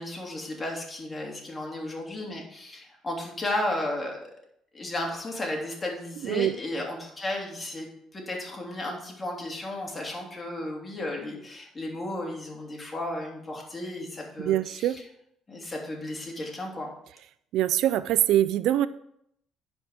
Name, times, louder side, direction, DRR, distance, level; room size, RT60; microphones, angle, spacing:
voice 1, 0.0-4.2 4.7-15.0 15.5-16.9, left 1 dB, 25° left, -1 dB, 3.2 m, -34 dB
voice 2, 6.2-6.6 14.4-15.0 17.5-18.9, right 12 dB, 75° right, 15 dB, 0.4 m, -24 dB
10.0 x 5.3 x 5.1 m, 0.73 s
supercardioid pair, 85°, 0 cm